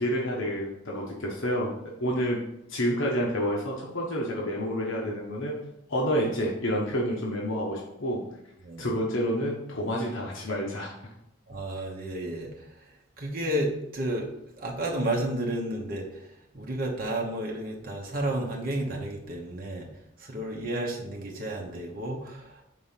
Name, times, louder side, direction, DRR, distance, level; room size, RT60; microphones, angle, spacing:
voice 1, 0.0-1.7 2.0-2.4 2.7-8.2 8.8-10.9, equal, 70° left, -3 dB, 1.1 m, -29 dB
voice 2, 11.5-12.6 13.2-14.3 14.6-16.3 16.5-19.9 20.2-22.6, right 1 dB, 45° right, -1 dB, 1.1 m, -31 dB
5.4 x 3.8 x 5.7 m, 0.81 s
head